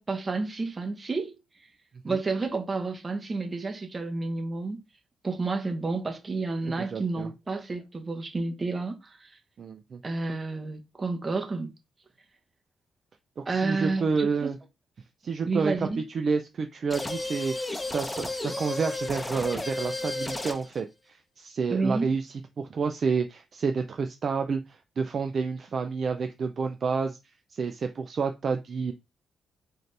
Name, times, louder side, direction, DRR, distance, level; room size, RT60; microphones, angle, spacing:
voice 1, 0.0-1.3 2.0-4.8 5.2-9.3 10.0-11.7 13.5-14.6 15.5-16.0 21.7-22.1, right 3 dB, 35° right, 1.1 m, -30 dB
voice 2, 6.8-7.3 9.6-10.0 13.4-14.6 15.2-17.6 17.8-27.2 27.5-28.9, right 5 dB, 60° right, 0.4 m, -29 dB
sound 1, 16.9-20.8, left 2 dB, 20° left, 0.7 m, -33 dB
3.9 x 2.6 x 3.2 m
supercardioid pair, 55°, 0 cm